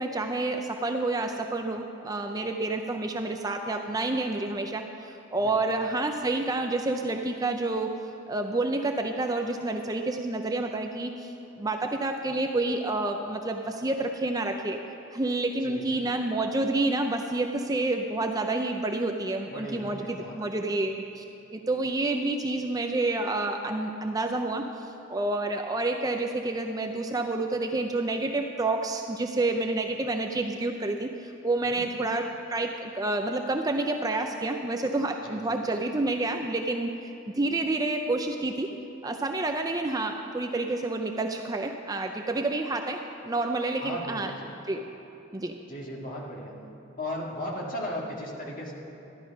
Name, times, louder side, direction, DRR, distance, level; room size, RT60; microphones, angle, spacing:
voice 1, 0.0-7.9 8.3-11.3 11.6-14.8 15.1-21.2 21.5-24.7 25.1-38.7 39.0-44.3 44.7-44.8 45.3-45.5, right 2 dB, 20° right, 4 dB, 0.4 m, -29 dB
voice 2, 15.6-16.1 19.5-20.7 31.6-31.9 35.2-35.9 43.8-44.5 45.7-46.6 47.0-48.7, left 1 dB, 40° left, -2 dB, 1.9 m, -37 dB
13.5 x 11.0 x 5.3 m, 3.0 s
head